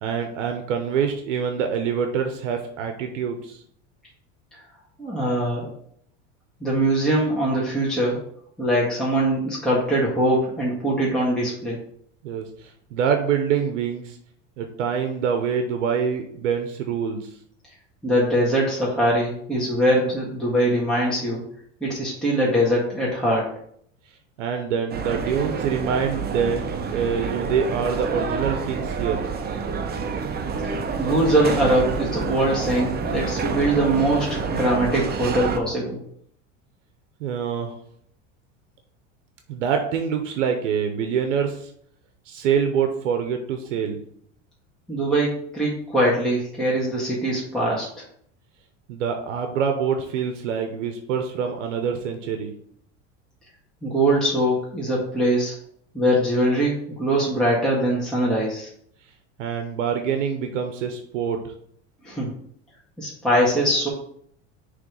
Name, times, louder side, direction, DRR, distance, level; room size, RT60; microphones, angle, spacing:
voice 1, 0.0-3.6 12.2-14.2 14.6-17.3 24.4-29.2 37.2-37.8 39.5-41.7 42.3-44.0 48.9-52.5 59.4-61.5, right 7 dB, 85° right, 5 dB, 0.8 m, -25 dB
voice 2, 5.0-5.7 6.6-8.2 8.6-11.8 18.0-21.4 21.8-23.5 30.6-36.0 44.9-47.9 53.8-55.5 55.9-58.7 62.0-62.3 63.0-63.9, right 1 dB, ahead, -7 dB, 1.7 m, -22 dB
sound 1, 24.9-35.6, right 5 dB, 25° right, 0.7 m, -28 dB
5.9 x 3.2 x 5.1 m, 0.66 s
supercardioid pair, 100°, 36 cm